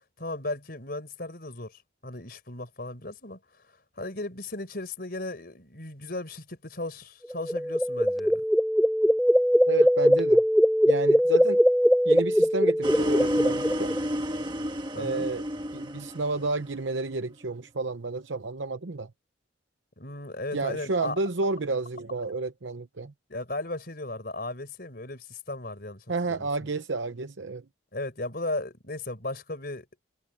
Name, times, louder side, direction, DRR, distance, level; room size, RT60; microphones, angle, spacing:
voice 1, 0.2-3.4 3.7-8.4 14.9-15.3 20.0-21.2 23.3-26.5 27.9-29.9, left 2 dB, 50° left, 4.8 m, -36 dB
sound 1, 7.3-14.0, equal, ahead, 0.6 m, -21 dB
voice 2, 9.7-10.4 10.9-11.6 12.0-13.9 14.9-15.4 15.7-19.1 20.5-23.1 26.1-27.6, right 3 dB, 75° right, 0.8 m, -31 dB
sound 2, 12.8-17.0, equal, 25° right, 1.6 m, -30 dB
head